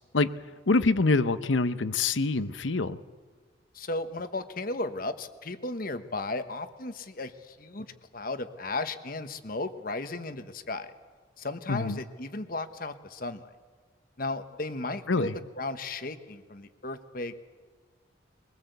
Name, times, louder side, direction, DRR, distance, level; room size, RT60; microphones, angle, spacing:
voice 1, 0.7-3.0 11.7-12.0 15.1-15.3, left 3 dB, 80° left, 13 dB, 0.8 m, -25 dB
voice 2, 3.7-10.9 11.4-13.5 14.2-17.4, left 2 dB, 50° left, 10 dB, 1.2 m, -35 dB
22.0 x 20.5 x 8.1 m, 1.5 s
head